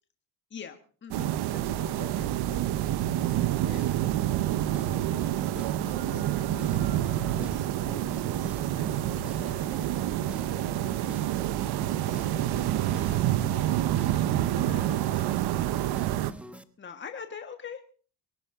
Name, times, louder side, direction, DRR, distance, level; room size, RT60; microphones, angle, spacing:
voice 1, 0.5-1.3 16.8-17.8, left 7 dB, 25° left, 6 dB, 1.6 m, -40 dB
sound 1, 1.1-16.3, right 13 dB, 70° right, 1.0 m, -28 dB
voice 2, 1.5-5.4 5.8-11.5 11.9-14.9, left 9 dB, 65° left, 8 dB, 3.4 m, -49 dB
sound 2, 3.7-16.6, right 1 dB, 5° right, 1.1 m, -44 dB
sound 3, 5.0-12.3, right 5 dB, 50° right, 3.9 m, -54 dB
23.5 x 11.5 x 3.8 m, 0.43 s
cardioid pair, 95°, 41 cm